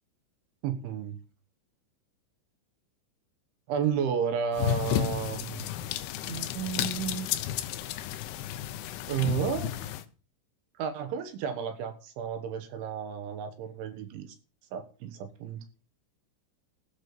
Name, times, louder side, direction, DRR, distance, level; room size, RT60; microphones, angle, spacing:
voice 1, 0.6-1.2 3.7-5.7 6.2-7.3 9.1-9.7 10.8-14.4 14.7-15.6, right 7 dB, 70° right, 8 dB, 3.5 m, -32 dB
sound 1, 4.5-10.0, left 12 dB, 80° left, 3.0 m, -32 dB
16.0 x 6.2 x 7.0 m, 0.36 s
omnidirectional pair, 6.0 m